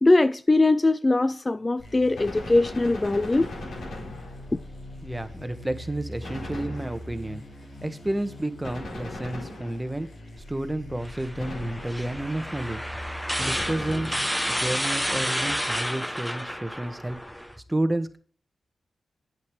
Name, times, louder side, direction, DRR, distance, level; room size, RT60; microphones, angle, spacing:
voice 1, 0.0-3.5, left 2 dB, 30° left, 0.4 m, -21 dB
sound 1, 1.8-15.5, left 1 dB, 65° left, 5.9 m, -42 dB
Gunshot gunfire, 2.1-4.7 6.2-7.3 8.6-10.1 11.4-12.2 13.4-14.5, left 2 dB, 80° left, 4.5 m, -39 dB
voice 2, 5.0-7.4 7.8-10.1 10.5-12.8 13.1-17.2 17.7-18.2, right 1 dB, 15° right, 1.5 m, -31 dB
sound 2, 11.0-17.5, equal, ahead, 1.2 m, -30 dB
8.4 x 8.2 x 4.9 m
cardioid pair, 45°, 0 cm